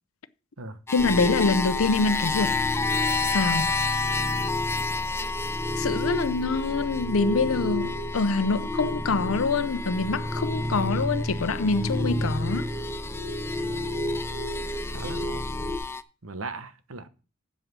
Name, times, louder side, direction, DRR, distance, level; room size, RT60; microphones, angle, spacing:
voice 1, 0.9-2.5 3.2-3.8 5.8-12.7, left 4 dB, 90° left, 0.7 m, -25 dB
sound 1, 0.9-16.0, left 4 dB, 10° left, 0.4 m, -32 dB
sound 2, 1.0-15.8, equal, 5° right, 1.3 m, -31 dB
voice 2, 14.9-15.5 15.8-15.9 16.2-17.1, right 3 dB, 90° right, 1.2 m, -38 dB
7.9 x 7.7 x 6.1 m
head